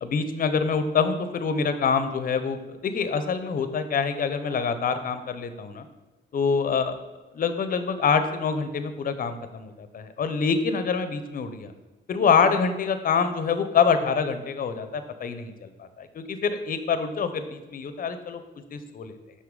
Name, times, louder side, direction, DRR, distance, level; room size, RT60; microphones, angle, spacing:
voice 1, 0.0-5.9 6.3-7.0 7.3-11.7 12.1-18.4 18.7-19.1, left 5 dB, 45° left, 9 dB, 0.7 m, -26 dB
6.1 x 5.5 x 3.8 m, 1.1 s
cardioid pair, 90°, 20 cm